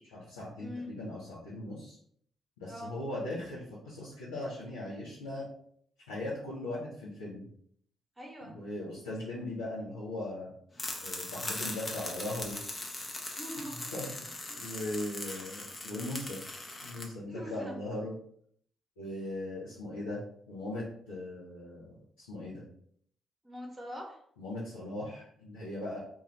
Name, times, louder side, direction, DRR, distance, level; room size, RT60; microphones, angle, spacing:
voice 1, 0.0-2.0 2.6-5.4 6.1-7.5 8.4-10.5 11.0-12.6 13.9-16.4 16.8-18.1 19.0-20.2 20.5-22.6 24.4-26.0, left 1 dB, 80° left, -9 dB, 0.6 m, -39 dB
voice 2, 0.6-0.9 2.7-2.9 8.2-8.5 13.3-13.8 14.5-14.6 15.2-15.5 17.3-17.7 23.4-24.2, equal, 20° right, -1 dB, 0.9 m, -43 dB
sound 1, 10.8-17.1, left 2 dB, 30° left, 0.7 m, -40 dB
2.4 x 2.3 x 3.2 m, 0.65 s
figure-of-eight pair, 40°, 0 cm